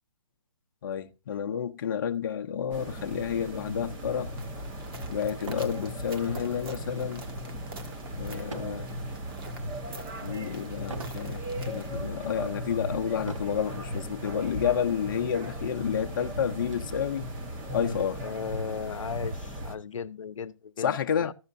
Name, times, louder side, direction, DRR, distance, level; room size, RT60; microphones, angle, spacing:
voice 1, 0.8-4.3 5.1-7.3 8.2-8.9 10.2-17.2 17.7-18.2 20.8-21.3, left 8 dB, 40° left, 0.7 m, -30 dB
sound 1, 2.7-19.8, equal, 15° right, 0.8 m, -37 dB
sound 2, 4.4-12.0, right 4 dB, 45° right, 1.5 m, -48 dB
sound 3, 5.4-5.8 6.3-6.6 8.5-8.9 9.5-9.9 10.9-11.2 12.0-12.1 13.2-13.7 14.7-14.8 15.1-15.2 15.7-16.8, right 4 dB, 70° right, 1.3 m, -43 dB
voice 2, 18.2-21.0 21.2-21.3, left 6 dB, 75° left, 0.7 m, -36 dB
14.5 x 6.5 x 2.6 m
hypercardioid pair, 160°, 17 cm